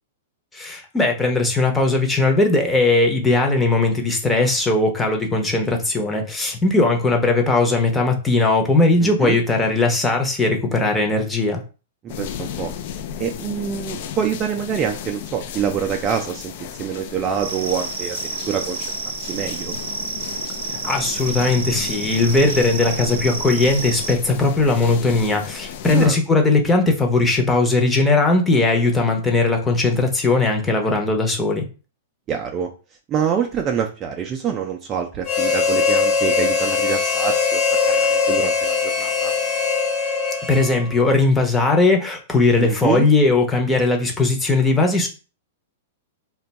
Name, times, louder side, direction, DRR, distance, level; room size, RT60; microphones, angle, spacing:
voice 1, 0.5-11.6 20.8-31.7 40.5-45.1, left 3 dB, 10° left, 2 dB, 0.7 m, -18 dB
voice 2, 9.0-9.4 12.0-12.7 13.2-18.2 18.5-18.8 19.3-19.7 25.9-26.2 32.3-32.7 33.1-39.3 42.5-43.1, right 8 dB, 25° right, 3 dB, 0.3 m, -26 dB
sound 1, 12.1-26.1, left 8 dB, 50° left, 0.3 m, -34 dB
sound 2, 17.4-24.1, right 4 dB, 85° right, 0.6 m, -30 dB
Harmonica, 35.2-41.0, left 5 dB, 35° left, 0.9 m, -21 dB
2.5 x 2.2 x 4.0 m, 0.34 s
hypercardioid pair, 150°, 0 cm